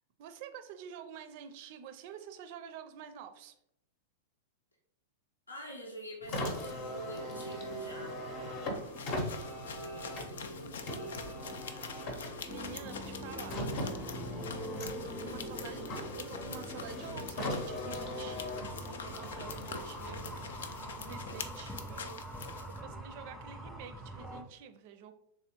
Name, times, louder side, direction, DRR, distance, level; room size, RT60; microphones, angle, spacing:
voice 1, 0.2-3.5 12.5-13.6 14.9-25.1, right 7 dB, 50° right, 9 dB, 0.4 m, -48 dB
voice 2, 5.5-8.2 9.7-11.3 15.2-15.4, equal, 85° left, 0 dB, 0.7 m, -47 dB
Car, 6.2-21.6, left 1 dB, 45° left, 0.8 m, -40 dB
sound 1, 8.7-22.8, left 6 dB, 70° left, 0.3 m, -46 dB
sound 2, 12.5-24.4, right 1 dB, 5° left, 0.5 m, -44 dB
3.3 x 3.2 x 2.9 m, 0.77 s
figure-of-eight pair, 95°, 0 cm